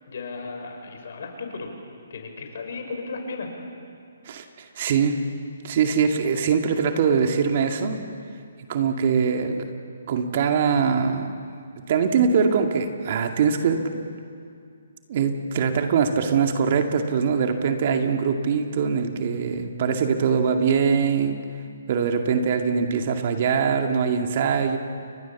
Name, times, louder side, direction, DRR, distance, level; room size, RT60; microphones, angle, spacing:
voice 1, 0.1-1.7 2.1-3.5, left 4 dB, 60° left, 4 dB, 5.5 m, -35 dB
voice 2, 4.3-5.2 5.6-8.0 8.7-9.7 10.1-11.4 11.9-14.1 15.1-21.4 21.9-24.8, right 6 dB, 45° right, 5 dB, 2.2 m, -22 dB
29.5 x 23.5 x 7.3 m, 2.3 s
hypercardioid pair, 150°, 0 cm